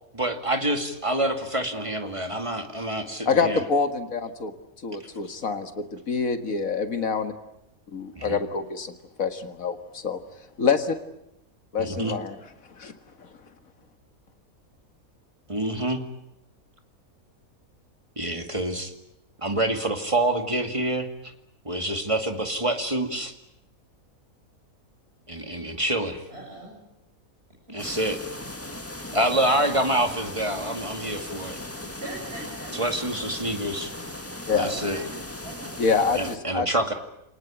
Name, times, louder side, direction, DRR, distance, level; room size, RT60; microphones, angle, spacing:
voice 1, 0.1-3.6 8.2-8.4 11.8-12.1 15.5-16.0 18.2-18.9 19.4-21.1 21.6-23.3 25.3-26.2 27.7-28.2 29.1-31.6 32.8-33.9 34.5-35.0 36.2-36.9, right 1 dB, 20° right, 6 dB, 2.3 m, -26 dB
voice 2, 3.3-4.5 4.8-7.3 7.9-10.2 10.6-11.0 11.7-12.4 12.8-12.9 13.2-13.3 34.5-34.7 35.8-36.7, left 5 dB, 70° left, 8 dB, 2.3 m, -26 dB
voice 3, 26.3-26.7 27.7-27.9 31.9-32.7 34.6-36.1, right 1 dB, 45° right, -5 dB, 8.5 m, -41 dB
sound 1, 27.8-36.4, left 1 dB, 10° left, 1.7 m, -38 dB
28.0 x 19.5 x 9.9 m, 0.85 s
omnidirectional pair, 1.5 m